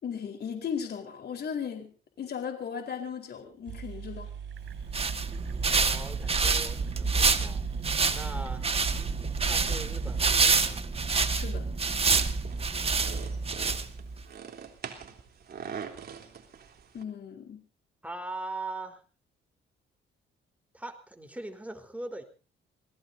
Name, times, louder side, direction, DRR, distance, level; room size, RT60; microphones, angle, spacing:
voice 1, 0.0-4.3 11.3-11.7 16.9-17.6, left 7 dB, 55° left, 4 dB, 4.4 m, -36 dB
sound 1, 3.4-3.5 3.7-11.5, right 8 dB, 70° right, 7.1 m, -39 dB
sound 2, 4.7-14.2, right 4 dB, 30° right, 1.7 m, -27 dB
voice 2, 5.7-7.6 8.1-8.6 9.5-10.8 12.7-13.0 18.0-19.0 20.7-22.2, right 2 dB, 5° right, 4 dB, 4.3 m, -41 dB
sound 3, 12.0-17.0, right 7 dB, 50° right, 3.5 m, -43 dB
27.5 x 18.5 x 2.8 m, 0.36 s
cardioid pair, 90°, 20 cm